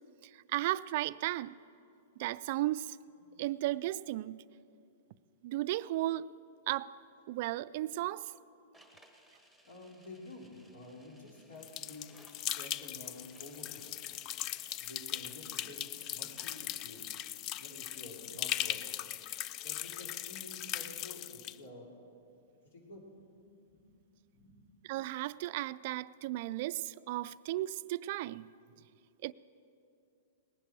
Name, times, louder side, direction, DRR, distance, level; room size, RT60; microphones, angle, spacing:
voice 1, 0.2-1.6 2.2-3.0 3.4-4.4 5.4-6.3 6.7-7.0 7.3-8.3 24.8-28.5 29.2-29.3, right 16 dB, 55° right, 0.3 m, -35 dB
sound 1, 8.7-16.9, equal, 5° left, 1.5 m, -64 dB
voice 2, 9.3-12.1 12.5-14.2 14.8-17.1 17.6-19.0 19.6-21.9 22.6-24.0 24.3-24.6, left 2 dB, 70° left, 3.6 m, -50 dB
sound 2, 11.6-21.5, left 12 dB, 35° left, 0.3 m, -39 dB
19.5 x 10.5 x 4.8 m
hypercardioid pair, 135°, 0 cm